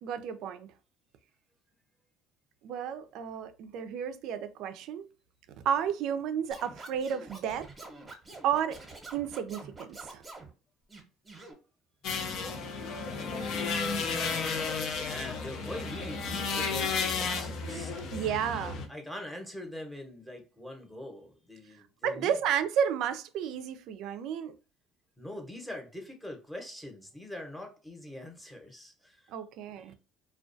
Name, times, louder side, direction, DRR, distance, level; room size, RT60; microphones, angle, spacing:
voice 1, 0.0-0.7 2.6-5.1 5.6-7.7 8.4-8.8 9.1-10.2 17.7-17.8 18.1-18.9 22.0-24.5 29.3-29.9, right 8 dB, 70° right, 0.3 m, -32 dB
Scratching (performance technique), 6.5-10.5 10.9-11.5, right 2 dB, 20° right, 0.8 m, -47 dB
sound 1, 12.0-18.9, left 5 dB, 60° left, 0.5 m, -33 dB
voice 2, 13.1-13.6 14.9-18.0 18.9-22.4 25.2-29.3 29.8-29.9, left 1 dB, 5° left, 0.8 m, -43 dB
2.3 x 2.2 x 2.5 m
supercardioid pair, 85°, 0 cm